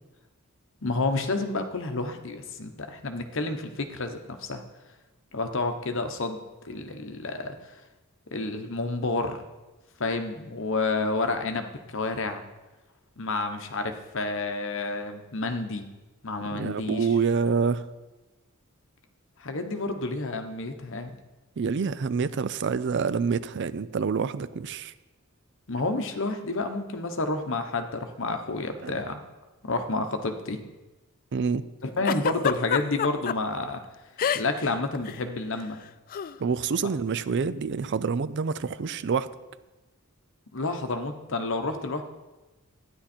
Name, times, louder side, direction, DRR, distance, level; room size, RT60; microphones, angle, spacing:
voice 1, 0.8-4.6 5.3-6.4 6.6-7.8 8.3-9.4 10.0-12.4 13.2-15.8 16.2-17.1 19.4-21.1 25.7-29.2 29.6-30.6 31.8-33.8 34.3-35.8 40.5-42.0, left 3 dB, 60° left, 7 dB, 1.1 m, -30 dB
voice 2, 16.5-17.9 21.6-24.9 28.8-28.9 31.3-31.7 36.4-39.3, right 5 dB, 55° right, 15 dB, 0.4 m, -27 dB
Giggle, 32.1-33.4 34.2-34.7 35.0-35.2 36.1-36.3, left 8 dB, 40° left, 0.3 m, -27 dB
12.5 x 9.9 x 4.4 m, 1.1 s
head